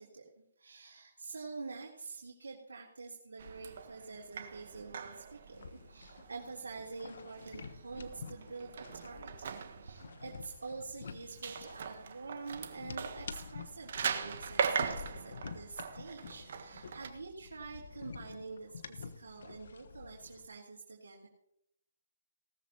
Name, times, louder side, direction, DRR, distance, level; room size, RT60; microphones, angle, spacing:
voice 1, 0.0-21.3, right 4 dB, 75° right, -4 dB, 3.3 m, -47 dB
sound 1, 3.4-17.1, right 6 dB, 55° right, 1.4 m, -41 dB
sound 2, 5.5-20.5, left 5 dB, 60° left, 1.2 m, -49 dB
18.0 x 13.5 x 2.9 m, 0.78 s
figure-of-eight pair, 140°, 0 cm